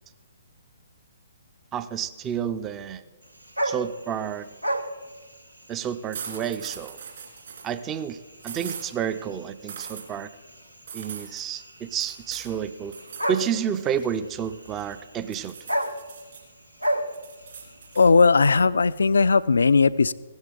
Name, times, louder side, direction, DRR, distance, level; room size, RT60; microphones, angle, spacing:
voice 1, 1.7-3.0 3.6-4.5 5.7-7.0 7.6-10.3 10.9-12.9 13.3-15.5, right 8 dB, 20° right, 14 dB, 0.5 m, -30 dB
sound 1, 3.2-18.4, right 1 dB, 85° right, 1.0 m, -35 dB
sound 2, 6.1-7.7 8.4-8.9 9.7-10.1 10.9-11.4 12.0-12.5 12.9-13.5 13.8-14.9 15.3-16.4 16.8-18.1, right 7 dB, 50° right, 2.9 m, -40 dB
voice 2, 18.0-20.1, left 4 dB, 65° left, 18 dB, 0.4 m, -18 dB
16.5 x 12.5 x 3.8 m, 1.3 s
figure-of-eight pair, 125°, 0 cm